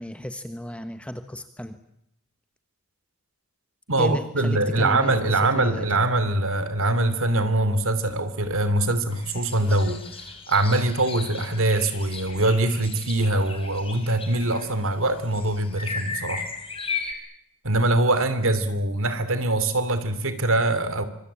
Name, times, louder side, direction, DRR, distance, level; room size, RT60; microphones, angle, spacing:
voice 1, 0.0-1.8 4.0-5.9 8.8-8.9, equal, 5° left, 9 dB, 1.2 m, -33 dB
voice 2, 3.9-10.0 10.5-16.5 17.6-21.0, right 2 dB, 65° right, 12 dB, 3.0 m, -23 dB
sound 1, 9.1-17.1, left 5 dB, 25° left, 5.2 m, -36 dB
25.5 x 24.0 x 8.8 m, 0.75 s
head